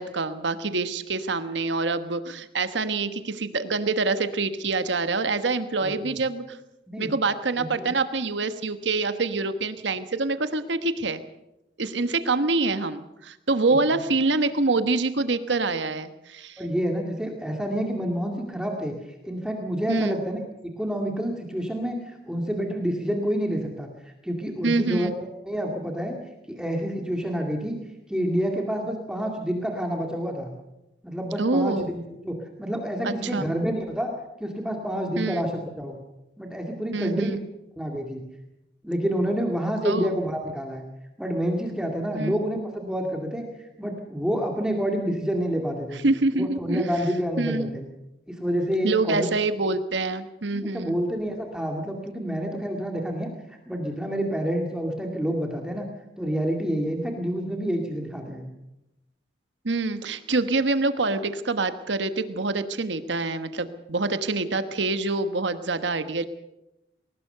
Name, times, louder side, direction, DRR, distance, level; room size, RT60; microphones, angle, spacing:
voice 1, 0.0-6.6 7.0-11.2 11.8-16.6 19.9-20.2 24.6-25.1 31.4-31.9 33.0-33.4 35.2-35.4 36.9-37.4 39.8-40.1 42.1-42.4 46.0-46.9 47.4-47.7 48.8-51.0 59.6-66.3, right 3 dB, 85° right, 10 dB, 1.3 m, -26 dB
voice 2, 5.8-6.2 6.9-7.1 7.6-7.9 13.7-13.8 16.6-18.9 19.2-20.4 20.8-26.2 26.5-27.8 28.1-30.5 31.0-32.0 32.2-34.1 34.4-35.9 36.4-37.4 37.8-38.2 38.8-40.8 41.2-46.0 46.3-47.8 48.3-49.3 50.5-55.9 56.2-58.5, equal, 5° right, 1 dB, 2.2 m, -28 dB
20.5 x 18.5 x 6.7 m, 0.91 s
head